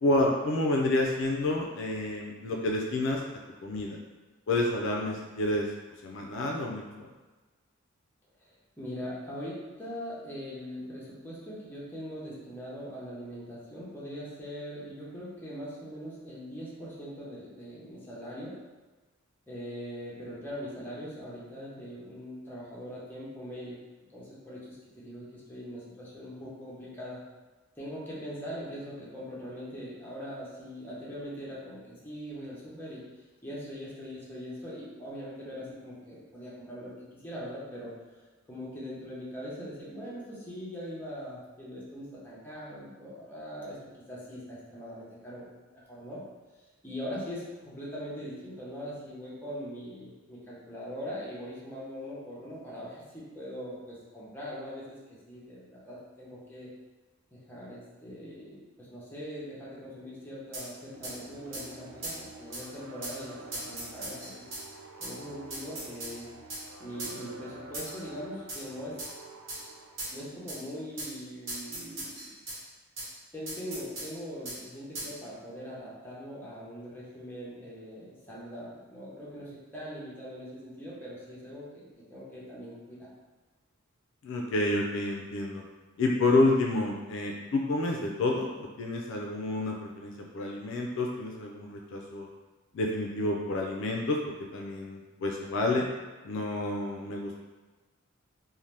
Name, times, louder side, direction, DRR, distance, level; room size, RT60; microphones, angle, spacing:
voice 1, 0.0-3.2 3.6-4.0 4.5-5.7 6.0-6.9 84.2-85.6 86.0-92.3 92.7-95.9 96.2-97.4, left 2 dB, 65° left, 0 dB, 0.3 m, -29 dB
voice 2, 8.4-18.6 19.5-23.8 24.1-27.2 27.8-33.0 33.4-37.9 38.5-43.8 44.1-46.2 46.8-55.0 55.3-56.7 57.3-64.4 65.0-66.3 66.8-69.0 70.1-72.4 73.3-83.1, equal, 10° left, -7 dB, 0.7 m, -41 dB
sound 1, 60.5-60.7 61.0-61.2 61.5-61.7 62.0-62.2 62.5-62.6 63.0-63.2 63.5-64.6 65.0-65.1 65.5-66.1 66.5-66.6 67.0-67.2 67.7-68.0 68.5-68.6 69.0-69.1 69.5-69.6 70.0-70.1 70.5-70.6 71.0-71.1 71.5-72.6 73.0-73.1 73.5-74.1 74.5-74.6 74.9-75.1, right 2 dB, 60° right, 1.0 m, -38 dB
sound 2, 60.9-70.3, right 2 dB, 80° right, 0.3 m, -49 dB
2.7 x 2.1 x 3.2 m, 1.3 s
head